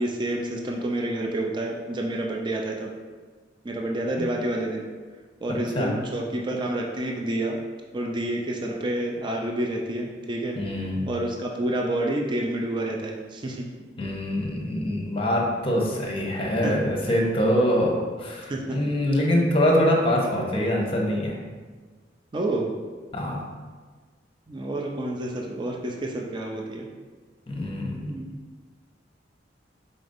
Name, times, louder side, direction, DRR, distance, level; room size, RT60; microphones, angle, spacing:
voice 1, 0.0-2.9 3.6-4.9 5.4-7.6 7.9-10.6 11.1-13.7 16.6-16.8 18.5-18.8 22.3-22.7 24.5-26.9 28.1-28.3, right 1 dB, 25° right, 0 dB, 0.4 m, -29 dB
voice 2, 5.5-5.9 10.5-11.0 14.0-21.4 23.1-23.4 27.5-28.1, equal, 30° left, -1 dB, 0.8 m, -24 dB
5.0 x 3.9 x 2.6 m, 1.4 s
head